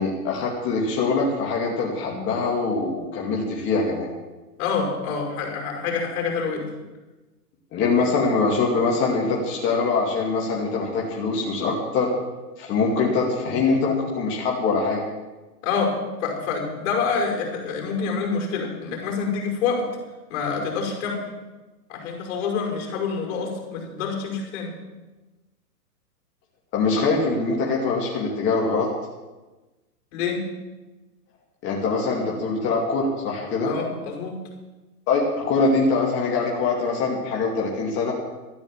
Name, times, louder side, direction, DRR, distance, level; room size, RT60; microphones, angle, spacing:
voice 1, 0.0-4.1 7.7-12.1 12.6-15.0 26.7-28.9 31.6-33.7 35.1-38.1, left 4 dB, 25° left, -2 dB, 2.4 m, -23 dB
voice 2, 4.6-6.7 8.0-8.1 15.6-15.9 16.2-19.9 20.3-21.2 21.9-24.7 30.1-30.4 33.6-34.4, left 5 dB, 45° left, 1 dB, 5.7 m, -27 dB
13.5 x 10.5 x 7.4 m, 1.1 s
hypercardioid pair, 145°, 48 cm